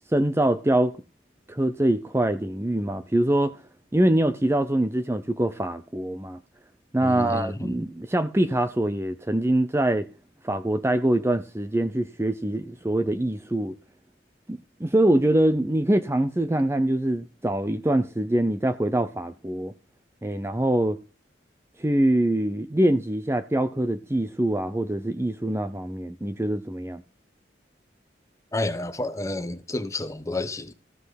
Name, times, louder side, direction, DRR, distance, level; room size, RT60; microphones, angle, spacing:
voice 1, 0.1-1.0 1.5-3.6 3.9-6.4 6.9-10.1 10.4-13.7 14.5-19.7 20.2-21.0 21.8-27.0, right 1 dB, 15° right, 0.7 m, -24 dB
voice 2, 7.0-7.8 28.5-30.7, left 2 dB, 15° left, 1.2 m, -30 dB
15.0 x 5.9 x 5.9 m
head